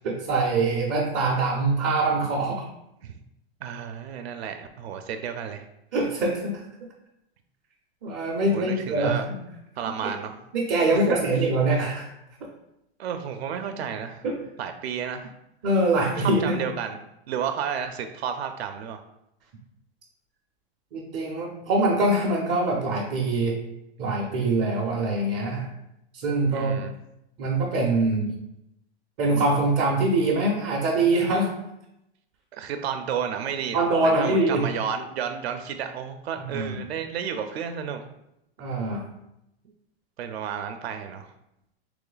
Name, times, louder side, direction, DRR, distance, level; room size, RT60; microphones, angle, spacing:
voice 1, 0.0-2.7 5.9-6.6 8.0-9.4 10.0-10.1 10.5-12.1 14.2-14.4 15.6-16.6 20.9-23.6 24.0-25.7 26.2-26.7 27.4-28.4 29.2-31.5 33.7-34.6 36.5-36.8 38.6-39.0, right 2 dB, 25° right, -4 dB, 0.5 m, -24 dB
voice 2, 3.6-5.7 8.5-9.3 9.8-10.3 10.9-11.5 13.0-14.2 14.6-15.3 16.2-17.0 17.3-19.0 26.5-26.9 32.5-38.0 40.2-41.3, right 7 dB, 80° right, 7 dB, 0.6 m, -32 dB
3.1 x 3.0 x 3.9 m, 0.84 s
supercardioid pair, 165°, 31 cm